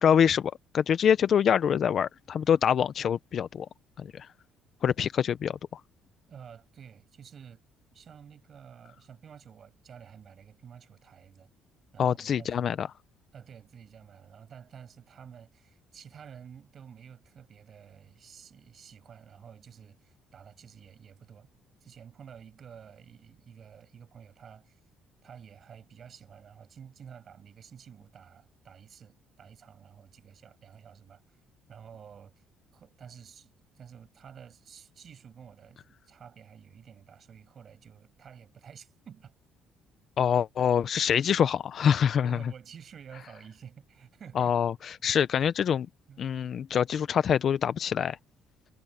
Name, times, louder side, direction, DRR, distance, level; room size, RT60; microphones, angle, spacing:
voice 1, 0.0-3.7 4.0-4.3 4.8-5.8 12.0-12.9 40.2-42.4 44.4-44.7 45.0-45.9 46.2-48.2, left 8 dB, 40° left, 0.5 m, -25 dB
voice 2, 6.3-7.6 7.9-11.5 11.9-12.7 13.3-21.5 21.8-24.8 25.2-31.2 31.7-32.4 32.7-39.3 42.2-44.6 46.1-46.2, right 7 dB, 35° right, 6.6 m, -50 dB
cardioid pair, 170°, 0 cm